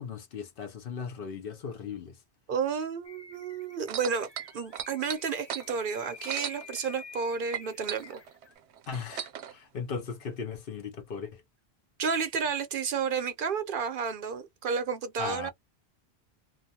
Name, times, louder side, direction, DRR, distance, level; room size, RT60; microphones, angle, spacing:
voice 1, 0.0-2.1 8.9-11.3 15.2-15.5, left 5 dB, 60° left, 0.8 m, -37 dB
voice 2, 2.5-4.3 4.5-8.2 12.0-15.5, right 6 dB, 60° right, 0.7 m, -31 dB
sound 1, 3.0-8.5, left 5 dB, 40° left, 0.4 m, -50 dB
sound 2, 3.8-7.2 7.5-9.5 10.3-10.4, right 9 dB, 90° right, 0.9 m, -38 dB
2.6 x 2.2 x 2.7 m
omnidirectional pair, 1.1 m